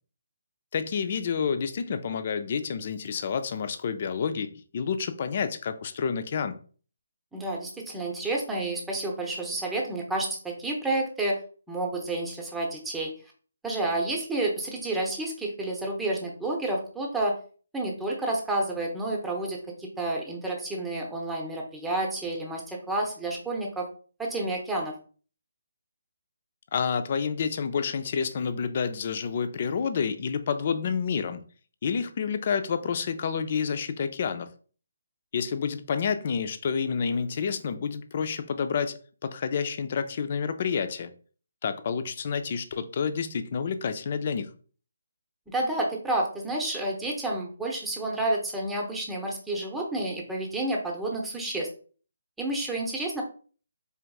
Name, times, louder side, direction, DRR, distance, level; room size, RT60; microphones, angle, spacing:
voice 1, 0.7-6.6 26.7-31.4 31.8-34.5 35.3-39.0 39.2-41.1 41.6-44.5, left 6 dB, 45° left, 0.4 m, -29 dB
voice 2, 7.3-11.4 11.7-13.1 13.6-17.4 17.7-23.9 24.2-24.9 45.5-51.7 52.4-53.2, right 2 dB, 5° right, 0.8 m, -30 dB
4.5 x 3.4 x 2.3 m
hypercardioid pair, 155°, 0 cm